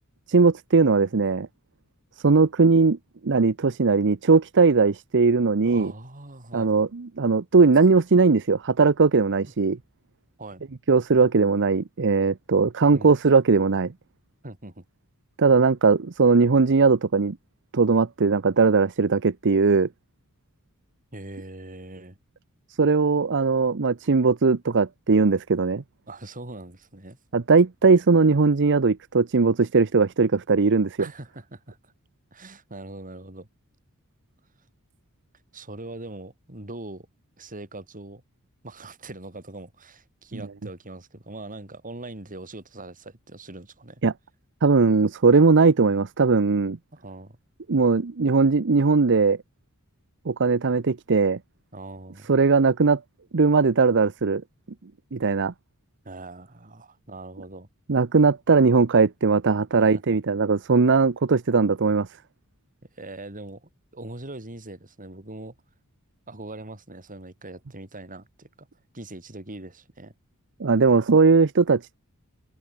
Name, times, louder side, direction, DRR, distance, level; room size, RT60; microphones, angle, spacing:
voice 1, 0.3-1.5 2.2-3.0 3.2-5.9 6.5-9.8 10.9-13.9 15.4-17.4 17.7-19.9 22.8-25.8 27.3-31.1 44.0-44.1 44.6-46.8 47.7-49.4 50.3-51.4 52.3-53.0 53.3-54.4 55.1-55.5 57.9-62.1 70.6-72.0, right 4 dB, 55° right, 0.7 m, -19 dB
voice 2, 5.6-6.7 10.4-10.6 12.9-13.1 14.4-14.8 21.1-22.2 26.1-27.2 31.0-31.9 32.3-33.5 35.5-37.1 37.4-38.2 38.6-44.0 46.9-47.4 51.7-52.3 56.0-57.7 59.8-60.0 62.9-65.5 66.3-68.7 68.9-70.1, right 2 dB, 40° right, 4.6 m, -41 dB
open air
head